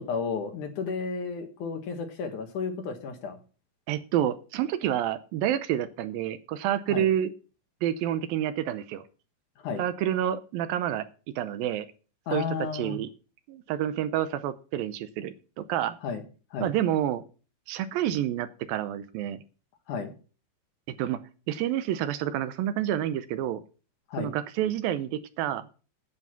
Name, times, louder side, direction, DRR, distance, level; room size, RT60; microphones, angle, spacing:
voice 1, 0.0-3.4 6.9-7.1 9.6-9.8 12.3-13.0 16.0-16.2 16.5-16.7 19.9-20.1 24.1-24.3, left 5 dB, 65° left, 6 dB, 2.5 m, -32 dB
voice 2, 3.9-7.3 7.8-9.0 9.8-11.1 11.4-11.9 12.3-13.1 13.5-16.0 16.6-17.2 17.7-19.4 21.0-21.2 21.5-23.6 24.2-25.7, right 11 dB, 80° right, 13 dB, 2.4 m, -28 dB
9.6 x 8.1 x 5.7 m, 0.36 s
omnidirectional pair, 4.3 m